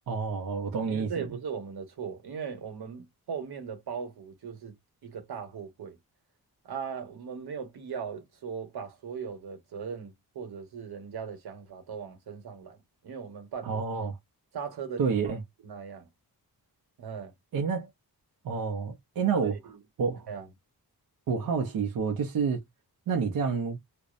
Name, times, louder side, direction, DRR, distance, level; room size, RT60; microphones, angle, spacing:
voice 1, 0.1-1.3 13.6-14.2 15.0-15.4 17.5-17.9 18.4-19.6 20.0-20.3 21.3-22.6 23.1-23.8, right 5 dB, 65° right, 0.6 m, -29 dB
voice 2, 0.8-4.7 5.0-6.0 6.6-13.8 14.5-15.3 15.6-16.1 17.0-17.3 19.4-19.8 20.3-20.5, right 6 dB, 85° right, 1.1 m, -39 dB
2.6 x 2.0 x 2.4 m
wide cardioid pair, 145°, 37 cm